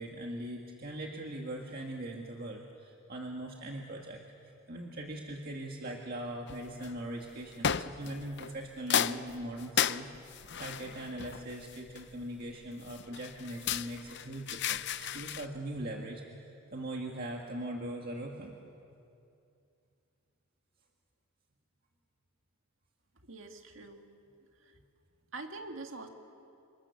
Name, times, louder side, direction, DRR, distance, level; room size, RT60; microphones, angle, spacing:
voice 1, 0.0-4.2 4.7-10.1 10.6-18.6, right 1 dB, 45° right, 0 dB, 1.9 m, -40 dB
sound 1, 6.5-6.9 7.6-8.6 8.9-12.2 12.9-15.5, left 8 dB, 55° left, 0.6 m, -33 dB
voice 2, 23.3-24.1 25.3-26.1, right 3 dB, 70° right, 4 dB, 2.1 m, -44 dB
30.0 x 27.0 x 7.1 m, 2.6 s
head